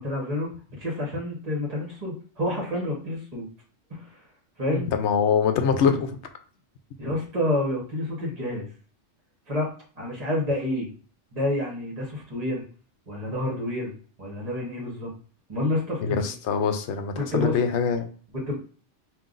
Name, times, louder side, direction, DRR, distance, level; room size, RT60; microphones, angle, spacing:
voice 1, 0.0-3.5 3.9-4.3 4.6-4.9 7.0-8.6 9.5-10.9 11.3-12.6 13.1-13.9 14.2-15.1 15.5-16.3 17.2-17.6 18.3-18.6, left 1 dB, 35° right, -2 dB, 1.3 m, -29 dB
voice 2, 4.7-6.2 16.0-18.1, left 6 dB, 75° left, 7 dB, 0.9 m, -24 dB
5.5 x 2.7 x 2.5 m, 0.42 s
omnidirectional pair, 1.2 m